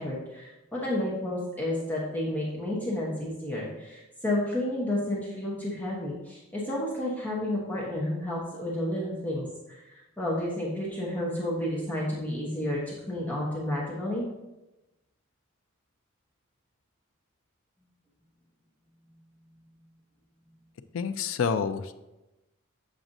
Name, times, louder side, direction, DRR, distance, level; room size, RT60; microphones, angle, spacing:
voice 1, 0.0-14.2, left 1 dB, 10° left, -6 dB, 0.9 m, -31 dB
voice 2, 20.9-21.9, left 6 dB, 75° left, 11 dB, 0.4 m, -28 dB
7.3 x 5.0 x 2.6 m, 1.0 s
head